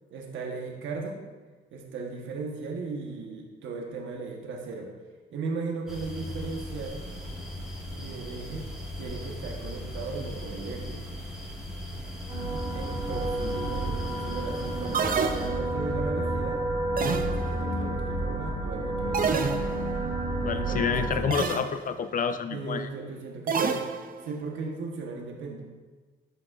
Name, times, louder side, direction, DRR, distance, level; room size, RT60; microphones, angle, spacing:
voice 1, 0.1-1.2 1.7-4.9 5.3-7.0 7.9-8.7 9.0-11.2 12.7-16.6 17.2-19.6 20.5-21.4 22.5-25.6, right 4 dB, 75° right, 1 dB, 1.1 m, -37 dB
sound 1, 5.9-15.5, left 1 dB, ahead, 1.7 m, -39 dB
sound 2, 12.3-21.2, right 1 dB, 25° right, 2.1 m, -30 dB
sound 3, 14.9-15.9 17.0-17.7 19.1-20.0 21.3-21.8 23.5-24.4, right 5 dB, 45° right, 0.6 m, -29 dB
voice 2, 20.4-22.9, left 6 dB, 45° left, 10 dB, 0.6 m, -29 dB
11.0 x 5.2 x 2.4 m, 1.3 s
cardioid pair, 90°, 20 cm